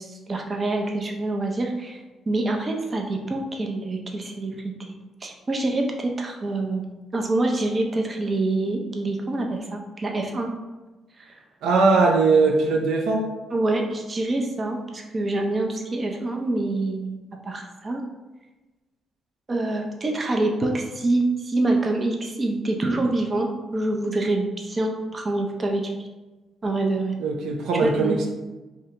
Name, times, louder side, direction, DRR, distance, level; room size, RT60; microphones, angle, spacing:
voice 1, 0.0-2.0 2.3-6.8 7.1-10.5 13.5-17.2 17.4-18.0 19.5-25.9 26.6-27.2 27.8-28.2, right 2 dB, 30° right, 2 dB, 0.5 m, -26 dB
voice 2, 11.6-13.3 27.2-28.3, right 3 dB, 85° right, 1 dB, 0.5 m, -20 dB
2.8 x 2.7 x 3.2 m, 1.1 s
cardioid pair, 90°, 0 cm